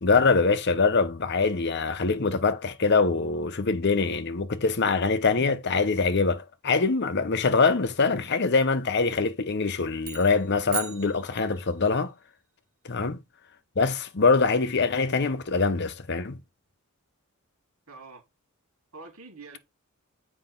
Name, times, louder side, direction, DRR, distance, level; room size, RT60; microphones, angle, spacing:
voice 1, 0.0-12.1 12.8-13.2 13.8-16.4, left 4 dB, 50° left, 0.8 m, -24 dB
sound 1, 10.0-11.9, right 11 dB, 65° right, 1.0 m, -38 dB
voice 2, 17.9-18.2 18.9-19.6, right 3 dB, 90° right, 3.8 m, -45 dB
7.6 x 5.3 x 3.7 m
head